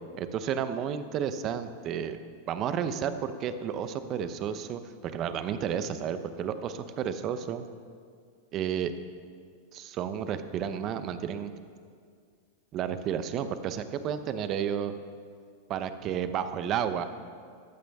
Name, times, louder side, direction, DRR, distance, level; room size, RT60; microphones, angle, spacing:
voice 1, 0.2-2.2 2.5-7.6 8.5-8.9 9.7-11.5 12.7-14.9 15.7-17.0, right 8 dB, 35° right, 10 dB, 0.8 m, -32 dB
14.5 x 11.0 x 3.6 m, 2.1 s
hypercardioid pair, 130°, 0 cm